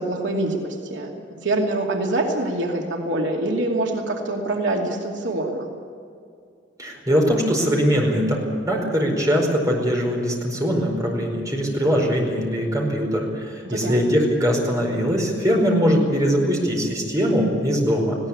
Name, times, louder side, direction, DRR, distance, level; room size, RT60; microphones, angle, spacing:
voice 1, 0.0-5.7 13.6-14.0, right 2 dB, 80° right, 0 dB, 2.6 m, -25 dB
voice 2, 6.8-8.4 8.7-18.2, equal, 20° right, 0 dB, 4.9 m, -21 dB
19.5 x 17.5 x 8.6 m, 2.3 s
head